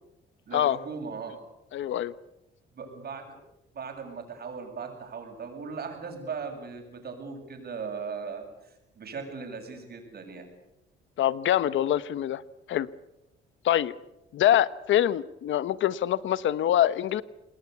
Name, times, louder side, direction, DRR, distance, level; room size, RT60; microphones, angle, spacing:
voice 1, 0.5-1.4 2.7-3.3 3.7-10.5, right 5 dB, 50° right, 4 dB, 7.9 m, -38 dB
voice 2, 1.7-2.1 11.2-12.4 12.7-12.9 13.6-13.9 14.3-17.2, left 11 dB, 75° left, 17 dB, 1.0 m, -24 dB
27.0 x 20.5 x 8.3 m, 0.91 s
cardioid pair, 90°, 20 cm